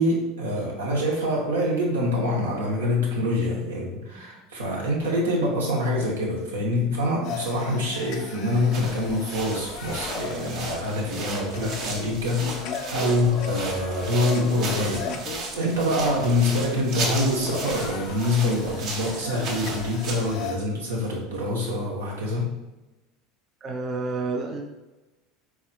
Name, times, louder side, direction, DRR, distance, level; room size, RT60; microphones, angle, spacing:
voice 1, 0.0-22.5, left 1 dB, 80° right, -2 dB, 0.9 m, -25 dB
sound 1, 7.2-20.6, left 5 dB, 55° left, 0.4 m, -37 dB
sound 2, 8.5-20.4, right 3 dB, 50° right, 0.8 m, -35 dB
voice 2, 23.6-24.6, right 3 dB, 35° right, 3 dB, 0.4 m, -29 dB
4.4 x 3.6 x 2.2 m, 1.1 s
figure-of-eight pair, 70°, 0 cm